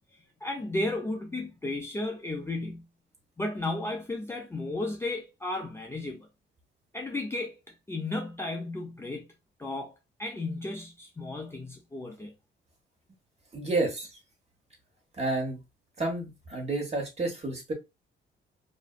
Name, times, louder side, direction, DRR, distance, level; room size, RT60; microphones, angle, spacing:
voice 1, 0.1-2.9 3.4-6.3 6.9-9.3 9.6-12.3, left 2 dB, 10° left, 0.4 m, -34 dB
voice 2, 13.5-14.1 15.2-15.6 16.0-17.7, right 2 dB, 30° right, 1.1 m, -30 dB
2.5 x 2.1 x 2.4 m
cardioid pair, 90°, 20 cm